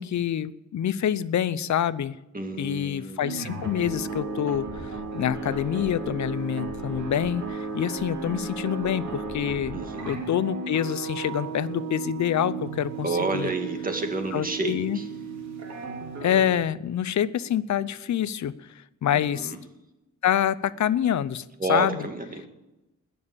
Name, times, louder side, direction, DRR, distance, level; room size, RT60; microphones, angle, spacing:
voice 1, 0.0-2.2 2.6-13.5 14.3-15.0 16.2-18.7 19.0-19.5 20.2-22.1, left 10 dB, 70° left, 17 dB, 0.6 m, -26 dB
voice 2, 2.3-3.4 9.7-10.2 13.0-15.1 19.1-19.6 21.6-22.5, right 3 dB, 30° right, 5 dB, 2.1 m, -30 dB
sound 1, 3.2-16.6, right 4 dB, 60° right, 3.5 m, -34 dB
20.5 x 7.1 x 7.3 m, 0.96 s
wide cardioid pair, 110°, 30 cm